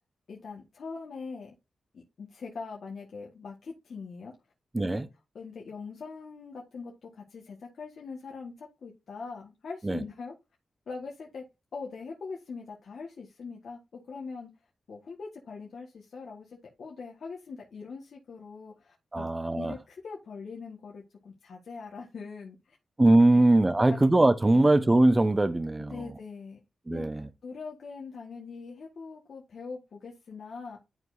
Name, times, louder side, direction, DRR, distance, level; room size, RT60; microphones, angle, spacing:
voice 1, 0.3-1.5 1.9-4.3 4.8-5.0 5.3-10.3 10.9-11.4 11.7-14.5 14.9-19.3 19.5-22.8 23.3-23.4 23.9-24.0 24.5-24.7 25.8-26.6 26.9-30.8, left 4 dB, 70° left, 1.4 m, -42 dB
voice 2, 4.7-5.0 9.8-10.0 19.1-19.7 23.0-26.0 26.9-27.3, right 2 dB, 25° right, 0.8 m, -22 dB
11.0 x 4.6 x 2.6 m
supercardioid pair, 50°, 0 cm